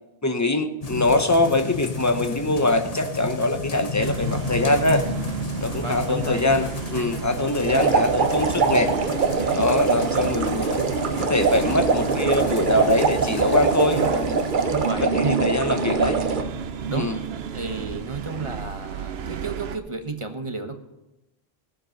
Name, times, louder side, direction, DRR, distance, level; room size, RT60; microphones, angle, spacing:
voice 1, 0.2-5.0 5.6-8.9 9.5-10.8 11.2-14.4 15.0-16.1 16.9-17.1, left 2 dB, 20° left, 6 dB, 0.9 m, -23 dB
sound 1, 0.8-14.9, left 3 dB, 40° left, 1.1 m, -33 dB
sound 2, 4.0-19.8, right 7 dB, 80° right, 1.0 m, -33 dB
voice 2, 5.4-6.6 10.1-10.5 12.8-12.9 13.9-14.1 14.7-16.2 16.9-17.1 17.5-20.8, right 3 dB, 30° right, 6 dB, 1.1 m, -32 dB
sound 3, 7.7-16.4, right 4 dB, 55° right, 1.0 m, -23 dB
17.0 x 7.6 x 5.8 m, 0.96 s
omnidirectional pair, 1.0 m